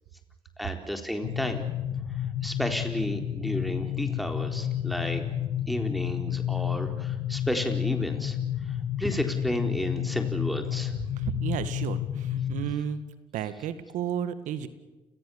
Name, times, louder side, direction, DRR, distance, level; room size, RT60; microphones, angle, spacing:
voice 1, 0.6-1.6 2.4-5.2 5.7-8.4 9.0-10.9, equal, ahead, 4 dB, 3.9 m, -32 dB
sound 1, 1.2-12.7, left 10 dB, 65° left, 1.3 m, -31 dB
voice 2, 11.1-13.0 13.3-14.7, right 9 dB, 70° right, 12 dB, 1.9 m, -32 dB
30.0 x 20.5 x 7.2 m, 1.2 s
hypercardioid pair, 60°, 13 cm